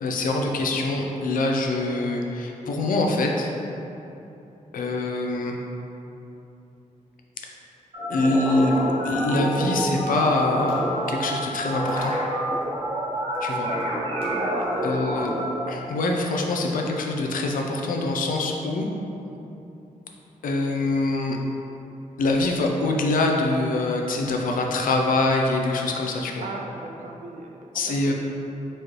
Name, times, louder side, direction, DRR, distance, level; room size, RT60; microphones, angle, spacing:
voice 1, 0.0-3.5 4.7-5.6 8.1-12.1 13.4-13.7 14.8-15.3 15.7-18.9 20.4-21.4 22.2-26.4 27.7-28.1, left 2 dB, 85° left, 1 dB, 0.5 m, -24 dB
sound 1, 7.9-15.5, equal, 40° right, 1.1 m, -27 dB
voice 2, 14.3-15.1 26.4-28.1, right 2 dB, 65° right, 2 dB, 0.5 m, -36 dB
4.3 x 3.2 x 3.0 m, 2.9 s
wide cardioid pair, 140°, 14 cm